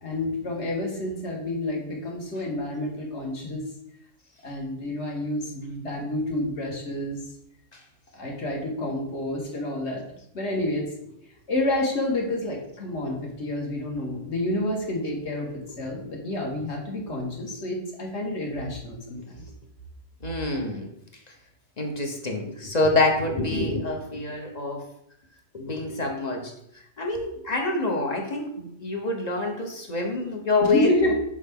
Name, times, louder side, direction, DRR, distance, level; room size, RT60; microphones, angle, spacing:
voice 1, 0.0-3.7 4.4-7.2 8.1-10.0 10.3-10.9 11.5-15.5 15.8-19.4 30.6-31.1, left 1 dB, 55° left, 0 dB, 1.7 m, -29 dB
voice 2, 20.2-20.9 21.8-24.9 25.5-26.5 27.0-31.1, left 2 dB, 35° left, 2 dB, 0.8 m, -26 dB
6.5 x 4.4 x 3.5 m, 0.76 s
omnidirectional pair, 1.4 m